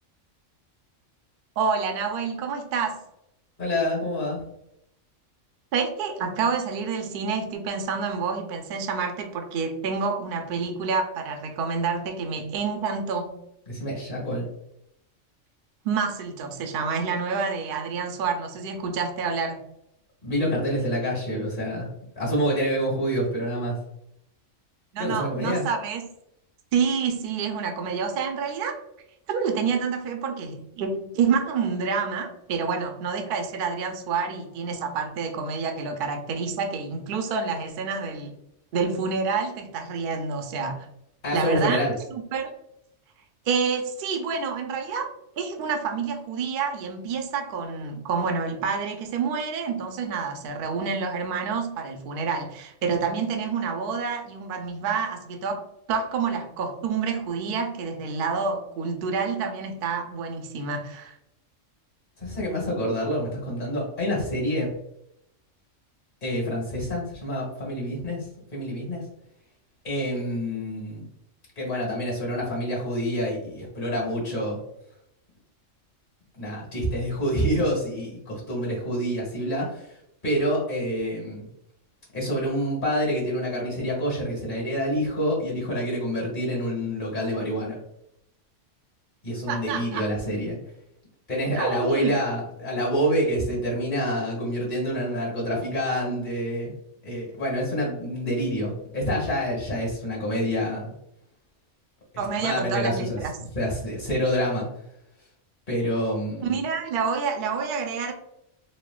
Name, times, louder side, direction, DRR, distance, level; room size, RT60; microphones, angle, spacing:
voice 1, 1.6-3.0 5.7-13.3 15.8-19.6 24.9-26.1 26.7-28.8 29.3-38.3 38.7-40.9 41.3-41.8 42.1-42.5 43.5-45.1 45.4-61.1 89.5-90.0 91.6-92.2 102.2-103.4 106.4-108.1, right 5 dB, 60° right, 5 dB, 0.6 m, -28 dB
voice 2, 3.6-4.5 13.7-14.4 20.2-21.9 22.1-23.8 25.0-25.7 41.2-41.9 62.2-64.7 66.2-69.0 69.8-71.1 71.6-74.6 76.3-81.5 82.1-87.8 89.2-90.6 91.3-96.7 97.0-100.9 102.4-104.7 105.7-106.6, equal, 40° left, -3 dB, 1.5 m, -27 dB
4.3 x 2.1 x 2.3 m, 0.80 s
omnidirectional pair, 1.3 m